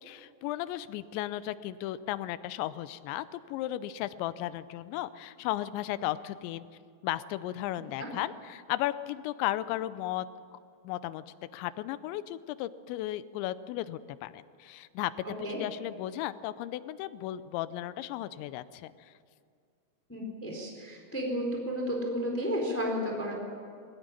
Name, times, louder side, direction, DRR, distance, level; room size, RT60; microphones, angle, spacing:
voice 1, 0.0-6.7 7.0-10.3 10.8-11.2 11.5-15.1 15.6-19.1, left 14 dB, 85° left, 14 dB, 3.0 m, -35 dB
voice 2, 20.1-23.3, equal, 5° left, 0 dB, 3.2 m, -32 dB
21.5 x 16.0 x 9.8 m, 2.2 s
omnidirectional pair, 5.1 m